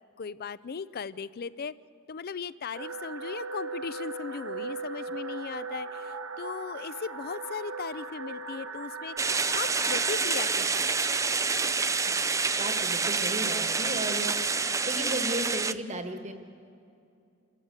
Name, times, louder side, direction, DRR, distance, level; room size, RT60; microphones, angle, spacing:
voice 1, 0.2-1.7 2.1-11.0 14.1-14.3, left 5 dB, 45° left, 18 dB, 0.5 m, -38 dB
sound 1, 2.7-10.3, right 3 dB, 65° right, 1.0 m, -38 dB
sound 2, 9.2-15.7, right 4 dB, 15° right, 0.4 m, -27 dB
voice 2, 12.6-14.3 14.8-16.3, right 1 dB, 30° right, 7 dB, 1.5 m, -34 dB
27.5 x 13.5 x 8.0 m, 2.5 s
head